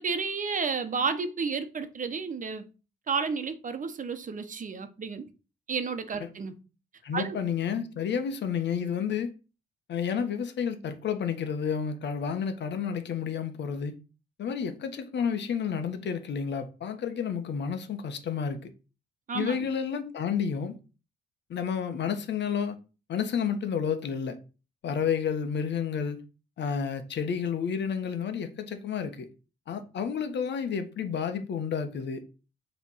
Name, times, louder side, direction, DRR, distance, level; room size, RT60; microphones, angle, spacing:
voice 1, 0.0-2.7 3.1-5.2 5.7-6.6 7.1-7.4 19.3-19.6, right 5 dB, 40° right, 1.1 m, -31 dB
voice 2, 7.0-9.3 9.9-13.9 14.4-18.7 19.3-20.8 21.5-22.8 23.1-24.4 24.8-26.2 26.6-29.3 29.7-32.2, left 7 dB, 60° left, 1.3 m, -30 dB
7.1 x 3.4 x 5.6 m
cardioid pair, 90°, 20 cm